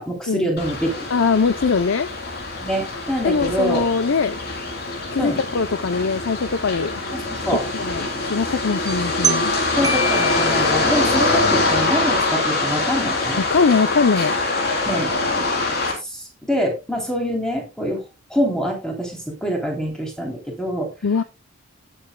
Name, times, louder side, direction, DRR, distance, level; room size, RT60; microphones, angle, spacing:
voice 1, 0.0-1.0 2.6-3.8 5.2-5.4 7.1-7.6 9.8-13.4 14.8-15.1 15.9-18.0 18.3-20.9, equal, 5° left, 3.1 m, -25 dB
sound 1, 0.6-15.9, left 3 dB, 45° left, 3.5 m, -24 dB
voice 2, 1.1-2.1 3.2-4.3 5.1-6.9 7.7-9.5 13.5-14.3 21.0-21.2, left 5 dB, 65° left, 0.6 m, -21 dB
sound 2, 8.9-11.3, right 2 dB, 15° right, 1.0 m, -27 dB
19.0 x 7.4 x 2.2 m
head